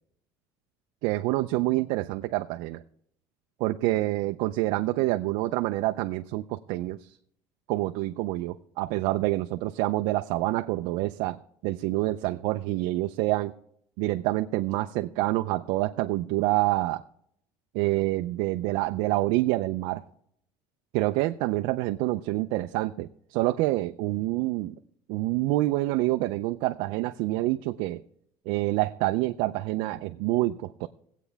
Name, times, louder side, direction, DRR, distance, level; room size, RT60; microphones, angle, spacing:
voice 1, 1.0-2.8 3.6-7.1 7.7-13.5 14.0-17.0 17.7-20.0 20.9-24.8 25.1-28.0 28.5-30.9, right 18 dB, 65° right, 7 dB, 0.5 m, -27 dB
18.5 x 8.2 x 3.4 m, 0.69 s
cardioid pair, 175°, 9 cm